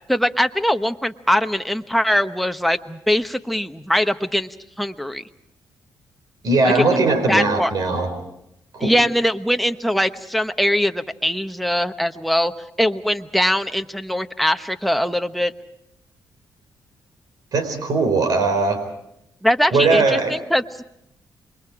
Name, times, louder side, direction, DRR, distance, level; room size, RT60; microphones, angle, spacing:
voice 1, 0.1-5.2 6.7-7.0 7.3-7.7 8.8-12.5 12.8-15.5 19.4-20.6, equal, ahead, 8 dB, 1.1 m, -21 dB
voice 2, 6.4-8.1 8.7-8.9 17.5-18.8 19.7-20.3, right 3 dB, 65° right, 8 dB, 4.4 m, -19 dB
28.0 x 23.0 x 4.9 m, 0.80 s
cardioid pair, 85°, 7 cm